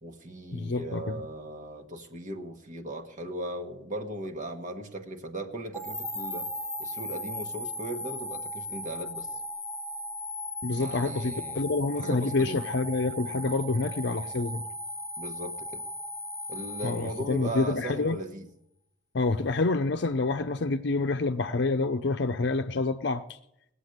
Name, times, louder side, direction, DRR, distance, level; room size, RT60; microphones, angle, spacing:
voice 1, 0.0-6.5 6.8-9.3 10.7-12.6 15.2-15.8 16.5-18.5, right 1 dB, 45° right, 1.4 m, -38 dB
voice 2, 0.5-1.2 10.6-14.6 16.8-18.2 19.1-23.2, left 3 dB, 60° left, 0.6 m, -27 dB
sound 1, 5.7-17.9, left 1 dB, 5° left, 0.5 m, -37 dB
18.5 x 8.1 x 8.0 m
head